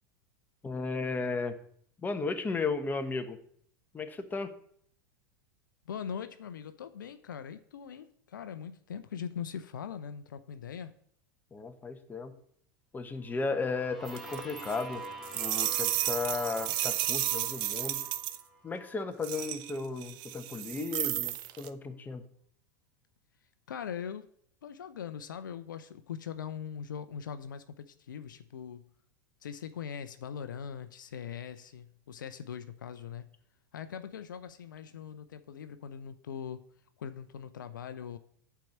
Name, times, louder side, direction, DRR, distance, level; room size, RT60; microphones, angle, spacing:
voice 1, 0.6-1.6 2.0-3.4 3.9-4.5 11.5-12.3 12.9-15.0 15.3-18.0 18.6-22.2, left 4 dB, 15° left, 7 dB, 1.3 m, -34 dB
voice 2, 5.9-10.9 23.7-24.3 24.6-28.9 29.4-33.3 33.7-36.6 37.0-38.2, left 8 dB, 75° left, 11 dB, 0.7 m, -41 dB
sound 1, 13.3-19.1, right 1 dB, ahead, 2.0 m, -46 dB
sound 2, 14.0-18.4 19.2-21.7, right 14 dB, 45° right, 0.8 m, -33 dB
9.0 x 4.7 x 7.2 m, 0.63 s
hypercardioid pair, 90°, 11 cm